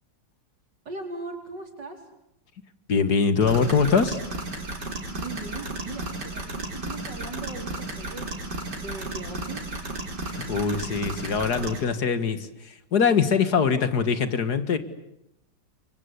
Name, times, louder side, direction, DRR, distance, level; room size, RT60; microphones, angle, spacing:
voice 1, 0.9-2.0 5.1-8.3 8.7-9.7, right 3 dB, 85° right, 3 dB, 5.2 m, -39 dB
voice 2, 2.9-4.2 10.3-14.8, left 5 dB, 65° left, 11 dB, 2.2 m, -23 dB
sound 1, 3.4-11.8, right 2 dB, 70° right, 5.0 m, -34 dB
29.5 x 24.0 x 8.3 m, 0.81 s
omnidirectional pair, 1.8 m